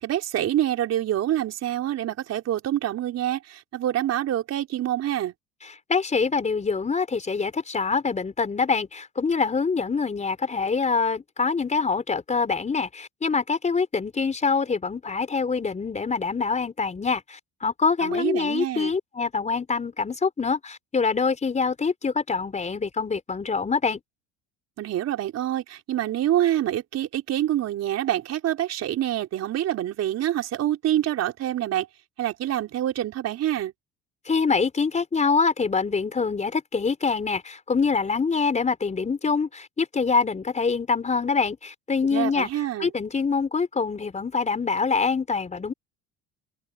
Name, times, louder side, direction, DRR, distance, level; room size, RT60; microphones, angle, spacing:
voice 1, 0.0-5.3 18.0-18.9 24.8-31.9 32.2-33.7 42.1-42.9, right 12 dB, 50° right, 4.5 m, -26 dB
voice 2, 5.6-24.0 34.3-42.5 42.8-45.7, left 5 dB, 20° left, 4.4 m, -25 dB
open air
supercardioid pair, 105°, 32 cm